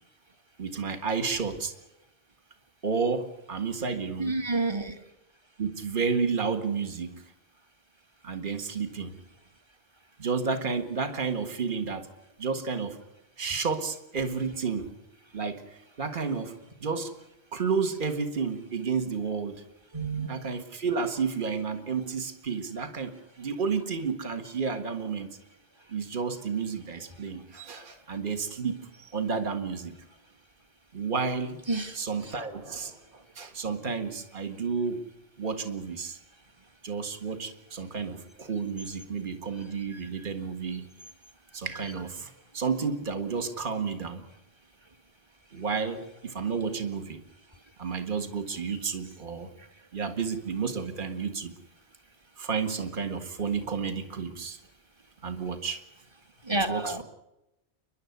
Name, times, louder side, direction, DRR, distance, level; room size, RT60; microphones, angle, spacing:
voice 1, 0.6-1.7 2.8-4.4 5.6-7.2 8.2-9.1 10.2-12.1 12.4-13.0 13.4-14.9 15.3-16.5 16.8-17.1 17.5-19.6 20.3-25.3 25.9-29.9 30.9-31.6 31.9-33.0 33.4-35.0 35.4-36.2 36.8-40.9 41.5-44.2 45.5-47.2 47.8-49.5 49.9-51.5 52.4-54.6 55.2-55.8 56.5-57.0, right 5 dB, 45° right, 7 dB, 1.9 m, -31 dB
voice 2, 4.2-4.9 19.9-20.3 31.7-31.9 41.7-41.9 56.5-57.0, right 2 dB, 25° right, 7 dB, 1.6 m, -29 dB
29.5 x 11.5 x 9.4 m, 0.96 s
omnidirectional pair, 1.2 m